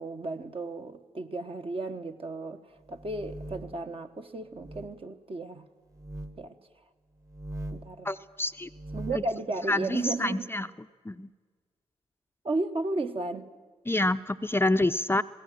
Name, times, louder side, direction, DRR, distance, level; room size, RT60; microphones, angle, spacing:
voice 1, 0.0-5.7 6.4-6.6 7.7-8.1 8.9-10.5 12.4-13.5, right 2 dB, 40° right, 1.3 m, -34 dB
sound 1, 2.8-3.8 4.5-4.9 5.9-6.4 7.2-7.9 8.6-9.3, right 1 dB, 25° right, 1.4 m, -40 dB
voice 2, 8.0-8.7 9.7-10.7 11.0-11.3 13.9-15.2, left 2 dB, 15° left, 0.6 m, -27 dB
20.5 x 17.5 x 7.7 m
hypercardioid pair, 40°, 14 cm